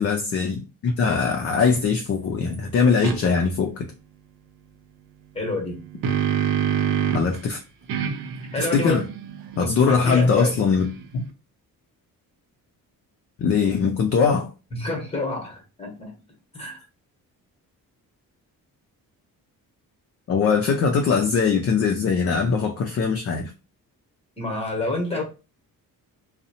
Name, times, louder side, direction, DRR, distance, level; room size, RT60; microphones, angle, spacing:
voice 1, 0.0-3.9 7.1-7.6 8.6-9.0 9.6-10.8 11.1-11.2 13.4-14.5 20.3-23.5, left 5 dB, 45° left, 0.4 m, -21 dB
sound 1, 3.0-3.2 5.6-7.4 7.9-11.2, right 8 dB, 70° right, 0.5 m, -27 dB
voice 2, 5.3-5.7 8.5-9.0 9.6-10.5 14.7-16.1 16.5-16.8 24.4-25.2, left 2 dB, 15° left, 0.9 m, -28 dB
2.6 x 2.0 x 2.8 m
cardioid pair, 130°, 36 cm